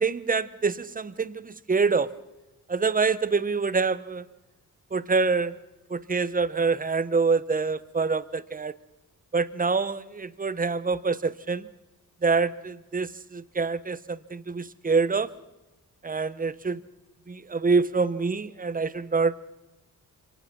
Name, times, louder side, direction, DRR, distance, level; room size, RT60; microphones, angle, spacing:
voice 1, 0.0-2.1 2.7-4.2 4.9-5.6 5.9-8.7 9.3-11.7 12.2-15.3 16.0-16.8 17.3-19.6, right 4 dB, 25° right, 16 dB, 0.9 m, -26 dB
25.0 x 18.5 x 5.9 m, 1.0 s
wide cardioid pair, 110°, 34 cm